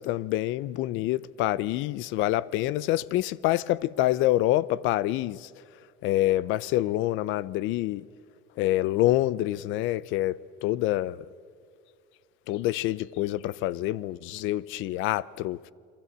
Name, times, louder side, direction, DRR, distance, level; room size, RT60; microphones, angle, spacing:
voice 1, 0.0-5.5 6.0-8.1 8.6-11.3 12.5-15.7, left 15 dB, 80° left, 0.7 m, -26 dB
28.5 x 23.0 x 8.1 m
cardioid pair, 160°, 20 cm